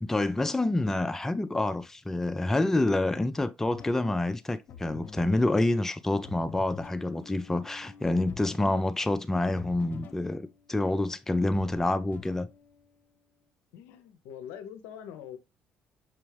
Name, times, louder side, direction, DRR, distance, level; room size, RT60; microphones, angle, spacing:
voice 1, 0.0-12.5, left 2 dB, 10° left, 0.3 m, -27 dB
sound 1, 3.7-13.2, left 7 dB, 55° left, 0.8 m, -48 dB
voice 2, 13.7-15.4, left 9 dB, 85° left, 0.5 m, -43 dB
6.0 x 2.2 x 3.2 m
supercardioid pair, 80°, 4 cm